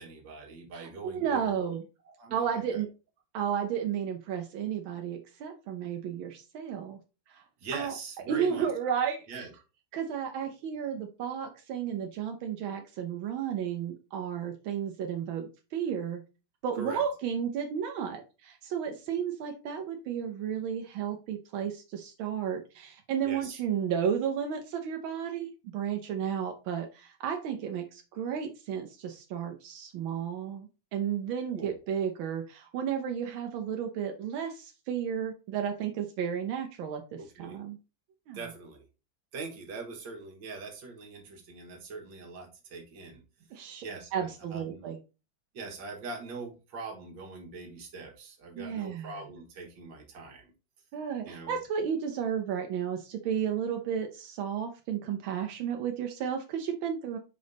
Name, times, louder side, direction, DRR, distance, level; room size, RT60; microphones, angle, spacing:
voice 1, 0.0-1.7 2.1-2.8 7.6-8.9 9.3-9.5 16.7-17.0 23.2-23.6 31.5-31.7 37.2-37.6 38.3-38.8 39.3-43.2 43.8-44.8 45.5-50.5 51.2-51.6, right 3 dB, 70° right, 2 dB, 2.2 m, -42 dB
voice 2, 0.7-1.8 2.3-2.9 3.3-7.0 7.3-7.4 7.7-7.9 8.3-9.5 9.9-16.2 16.6-37.8 38.3-38.4 43.5-43.8 44.1-45.0 48.6-49.3 50.9-57.2, right 8 dB, 90° right, 4 dB, 1.6 m, -33 dB
5.2 x 5.2 x 3.9 m, 0.31 s
omnidirectional pair, 2.1 m